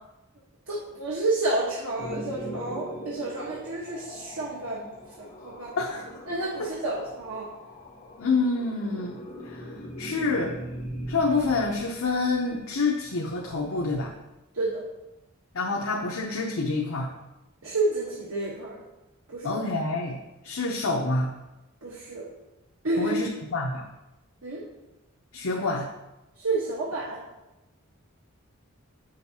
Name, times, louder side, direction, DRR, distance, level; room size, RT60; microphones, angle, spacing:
voice 1, 0.7-4.9 5.2-5.8 6.3-7.5 14.5-14.8 17.6-18.8 19.3-19.6 21.8-22.3 22.8-23.2 24.4-24.7 26.4-27.2, right 2 dB, 75° right, -5 dB, 1.2 m, -30 dB
sound 1, 2.0-14.1, equal, 35° left, 1.8 m, -41 dB
voice 2, 8.2-9.7 10.0-10.5 11.1-14.1 15.5-17.1 19.4-20.2 20.4-21.3 23.0-23.8 25.3-25.9, left 3 dB, 70° left, -1 dB, 0.8 m, -27 dB
8.3 x 6.4 x 2.8 m, 0.99 s
head